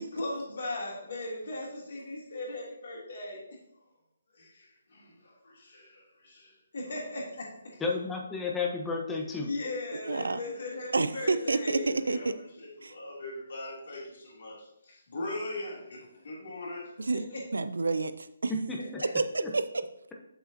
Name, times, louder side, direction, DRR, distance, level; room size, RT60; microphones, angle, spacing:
voice 1, 0.0-3.4 4.3-7.8 9.4-12.3 12.6-16.9 17.3-17.4, left 2 dB, 55° left, -4 dB, 2.9 m, -39 dB
voice 2, 7.8-9.5 18.5-19.0 19.4-19.5, left 3 dB, 10° left, 0 dB, 0.9 m, -32 dB
voice 3, 10.1-10.4 10.9-12.3 12.8-12.9 17.0-17.2 17.5-18.5 19.0-19.6, right 3 dB, 65° right, 12 dB, 0.4 m, -29 dB
7.8 x 6.8 x 2.9 m, 0.79 s
figure-of-eight pair, 140°, 0 cm